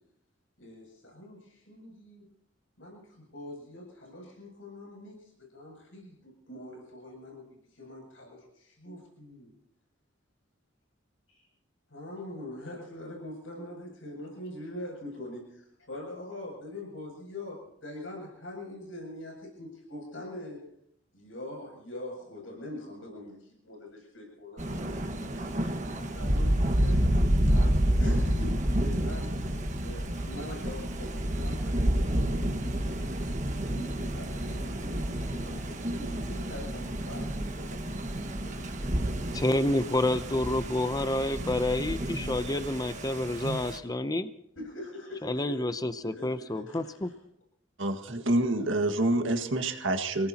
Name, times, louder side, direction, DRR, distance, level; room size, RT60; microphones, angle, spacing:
voice 1, 0.6-2.3 2.8-7.4 7.7-9.5 11.9-20.6 21.1-29.4 29.8-32.9 33.6-37.4 37.8-38.0 38.4-38.7 44.6-47.1, left 1 dB, 90° left, -1 dB, 7.5 m, -43 dB
Thunder, 24.6-43.8, right 1 dB, 40° right, 1.6 m, -29 dB
voice 2, 39.3-44.3 45.2-47.1, left 1 dB, 20° left, 11 dB, 0.6 m, -29 dB
voice 3, 47.8-50.3, right 1 dB, 80° right, 5 dB, 1.8 m, -27 dB
27.0 x 18.0 x 2.9 m, 0.73 s
head